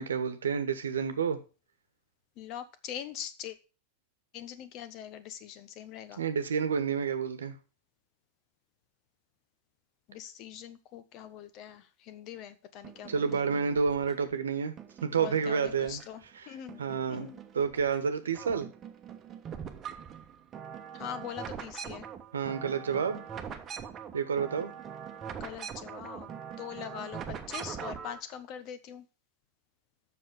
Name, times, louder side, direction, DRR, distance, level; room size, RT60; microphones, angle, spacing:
voice 1, 0.0-1.4 6.2-7.6 13.1-14.7 15.0-16.0 16.8-17.3 17.5-18.7 22.3-23.2 24.1-24.7, right 6 dB, 70° right, 10 dB, 1.3 m, -29 dB
voice 2, 2.4-3.6 4.3-6.2 10.1-13.5 15.2-16.8 17.1-17.4 20.9-22.1 25.4-26.3 26.6-29.1, left 10 dB, 40° left, 12 dB, 1.2 m, -42 dB
sound 1, 12.8-14.3 14.8-16.4 16.7-18.0 18.3-28.2, right 7 dB, 25° right, 1.2 m, -43 dB
7.7 x 6.6 x 7.1 m, 0.34 s
figure-of-eight pair, 90°, 0 cm